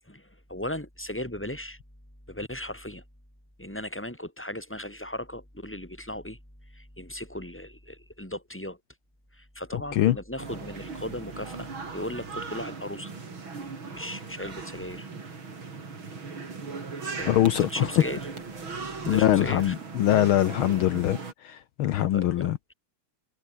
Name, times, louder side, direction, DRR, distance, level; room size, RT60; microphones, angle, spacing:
voice 1, 0.1-1.8 2.3-3.0 3.6-6.4 6.7-8.8 9.3-13.1 13.9-15.1 17.2-18.3 19.0-19.7 22.1-22.7, left 1 dB, 5° left, 4.5 m, -37 dB
sound 1, 10.4-21.3, right 4 dB, 40° right, 4.4 m, -38 dB
voice 2, 17.3-17.9 19.1-22.6, left 12 dB, 75° left, 1.2 m, -23 dB
omnidirectional pair, 3.3 m